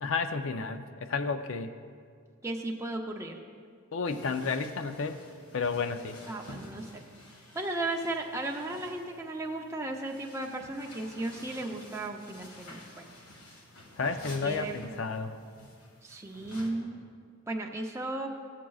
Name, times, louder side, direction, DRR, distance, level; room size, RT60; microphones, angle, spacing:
voice 1, 0.0-1.7 3.9-5.2 5.5-6.2 14.0-15.3, left 4 dB, 60° left, 9 dB, 0.5 m, -31 dB
voice 2, 2.4-3.4 6.3-7.0 7.5-13.1 14.2-14.9 16.0-17.0 17.5-18.3, right 2 dB, 10° right, 0 dB, 0.5 m, -35 dB
sound 1, 4.0-16.7, left 1 dB, 85° left, 1.6 m, -51 dB
17.0 x 7.4 x 2.3 m, 2.1 s
head